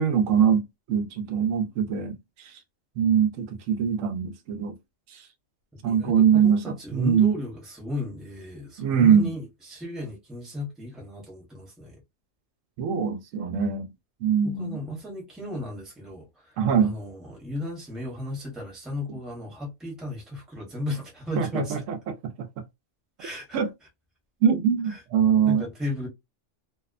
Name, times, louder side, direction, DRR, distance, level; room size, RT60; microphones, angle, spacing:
voice 1, 0.0-2.5 3.0-4.7 5.1-5.2 5.8-7.3 8.8-9.3 12.8-13.9 14.2-14.8 16.6-17.0 21.4-22.5 23.5-23.7 24.4-25.6, right 7 dB, 80° right, 1.0 m, -23 dB
voice 2, 5.8-12.0 14.4-16.5 16.8-21.8 23.2-23.6 24.9-25.0 25.4-26.1, left 1 dB, ahead, 0.8 m, -35 dB
2.7 x 2.0 x 2.4 m
omnidirectional pair, 1.4 m